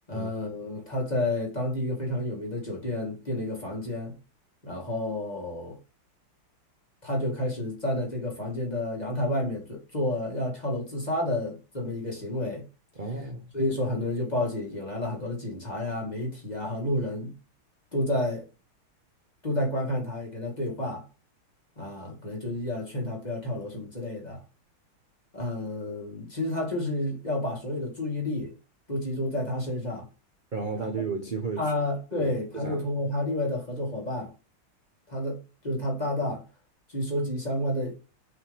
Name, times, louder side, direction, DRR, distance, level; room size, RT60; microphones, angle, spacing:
voice 1, 0.1-4.1 4.6-5.8 7.0-12.7 13.5-17.3 17.9-18.4 19.4-21.0 21.8-24.4 25.3-28.5 28.9-30.1 30.7-30.9 31.6-34.3 35.1-36.4 36.9-37.9, left 1 dB, 20° left, 2.4 m, -30 dB
voice 2, 13.0-13.5 30.5-31.7 32.1-32.9, right 4 dB, 40° right, 0.6 m, -33 dB
6.0 x 5.6 x 3.5 m
omnidirectional pair, 2.4 m